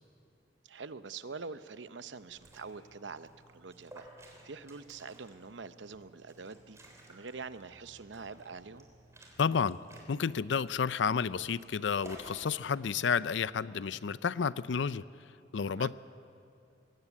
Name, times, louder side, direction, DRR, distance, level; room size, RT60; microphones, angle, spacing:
voice 1, 0.7-4.1 4.4-6.8 7.1-8.9 15.7-15.9, right 4 dB, 80° right, 12 dB, 0.8 m, -45 dB
Liquid, 2.2-12.5, right 1 dB, 15° right, 3.6 m, -56 dB
voice 2, 9.4-9.8 10.1-15.0 15.5-15.9, left 6 dB, 80° left, 17 dB, 0.5 m, -31 dB
21.0 x 17.0 x 8.4 m, 2.5 s
head